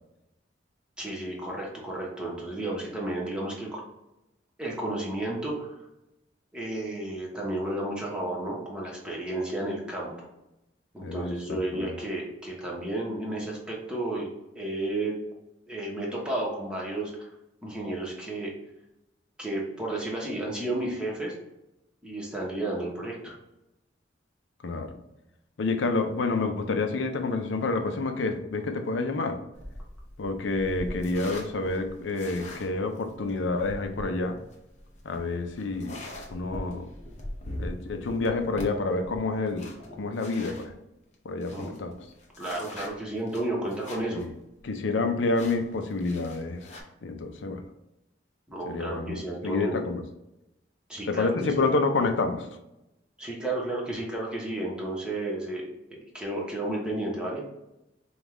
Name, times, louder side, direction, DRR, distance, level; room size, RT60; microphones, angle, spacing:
voice 1, 1.0-3.8 4.6-5.8 6.5-10.3 10.9-15.1 15.7-17.3 17.6-18.5 19.4-21.3 22.0-23.4 41.5-41.7 42.4-44.2 48.5-49.8 50.9-51.7 53.2-57.4, right 1 dB, 5° right, -4 dB, 1.0 m, -32 dB
voice 2, 11.0-11.9 24.6-24.9 25.6-29.4 30.2-34.4 35.0-36.0 36.3-36.9 37.6-39.7 40.0-40.8 41.2-41.9 44.1-44.3 44.6-46.7 47.0-47.6 48.7-50.0 51.1-52.5, left 3 dB, 75° left, 7 dB, 0.5 m, -28 dB
sound 1, 29.5-40.7 41.1-41.2 41.4-44.3 44.6-44.7 45.3-46.8, left 1 dB, 40° left, 0.7 m, -42 dB
5.2 x 2.4 x 3.1 m, 0.91 s
head